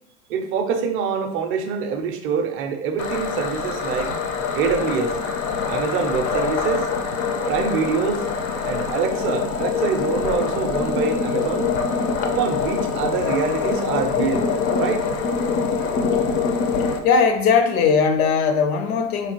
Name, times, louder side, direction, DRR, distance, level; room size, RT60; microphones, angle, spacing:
voice 1, 0.3-4.1 4.5-5.2 5.7-6.9 7.5-8.3 8.6-11.7 12.3-14.5 14.8-15.1, right 6 dB, 30° right, 5 dB, 0.4 m, -25 dB
sound 1, 3.0-17.0, left 5 dB, 35° left, 0.4 m, -24 dB
voice 2, 17.0-19.3, left 6 dB, 75° left, 6 dB, 0.8 m, -19 dB
4.4 x 2.3 x 2.9 m, 0.75 s
hypercardioid pair, 120°, 44 cm